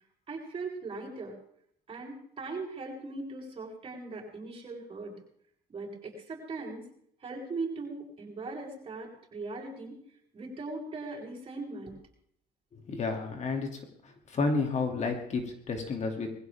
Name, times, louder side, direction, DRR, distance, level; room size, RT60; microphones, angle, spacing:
voice 1, 0.3-1.4 1.9-5.1 5.7-6.8 7.2-10.0 10.3-11.9, right 3 dB, 30° right, -3 dB, 7.3 m, -39 dB
voice 2, 12.7-16.3, left 3 dB, 45° left, 4 dB, 2.7 m, -31 dB
21.5 x 16.0 x 3.6 m, 0.66 s
cardioid pair, 110°, 17 cm